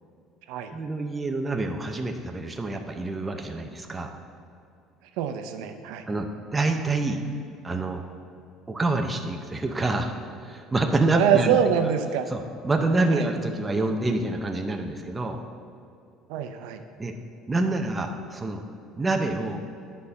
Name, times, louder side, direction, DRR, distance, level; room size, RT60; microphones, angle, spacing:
voice 1, 0.7-4.1 6.1-7.2 7.6-8.0 8.7-10.1 10.4-11.9 12.3-15.4 17.0-17.2 17.5-18.6 19.0-19.6, right 2 dB, 15° right, 4 dB, 0.5 m, -27 dB
voice 2, 5.2-6.0 11.1-12.3 13.1-13.3 16.3-16.8, right 8 dB, 80° right, 7 dB, 0.5 m, -24 dB
10.0 x 4.2 x 5.3 m, 2.6 s
cardioid pair, 150°, 0 cm